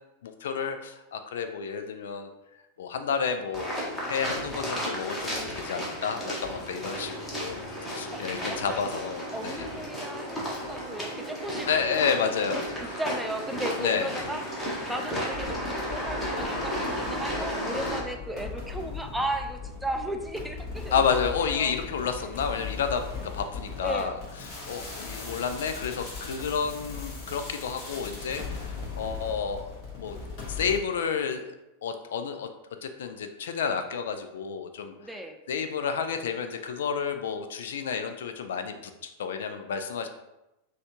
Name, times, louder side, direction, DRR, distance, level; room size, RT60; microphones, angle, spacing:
voice 1, 0.2-2.3 2.8-3.7 4.1-9.7 11.7-12.7 13.8-14.1 20.9-24.2 24.7-30.2 30.5-31.5 31.8-32.5 32.8-34.9 35.5-40.1, left 6 dB, 60° left, 7 dB, 0.3 m, -30 dB
sound 1, 3.5-18.0, equal, 20° left, 1.3 m, -33 dB
voice 2, 8.1-8.8 9.3-12.0 12.5-14.4 14.9-21.1 21.4-21.7 23.1-23.2 23.8-24.2 35.0-35.4, right 1 dB, 5° right, 4 dB, 0.4 m, -35 dB
sound 2, 15.3-30.8, left 4 dB, 40° left, 1.2 m, -39 dB
6.3 x 2.3 x 2.8 m, 0.94 s
figure-of-eight pair, 90°, 0 cm